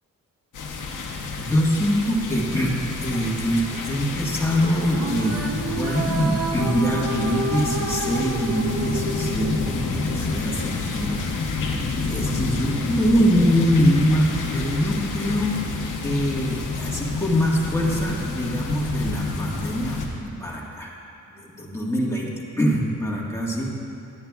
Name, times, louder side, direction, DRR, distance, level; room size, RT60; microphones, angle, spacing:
sound 1, 0.5-20.1, left 3 dB, 75° left, 0.9 m, -29 dB
voice 1, 1.4-5.4 5.8-11.2 12.1-15.6 16.0-20.9 21.3-22.3 22.6-23.7, equal, 10° left, -4 dB, 1.5 m, -24 dB
sound 2, 4.8-10.3, right 3 dB, 50° right, 0.7 m, -30 dB
10.5 x 8.8 x 2.3 m, 2.7 s
cardioid pair, 75°, 32 cm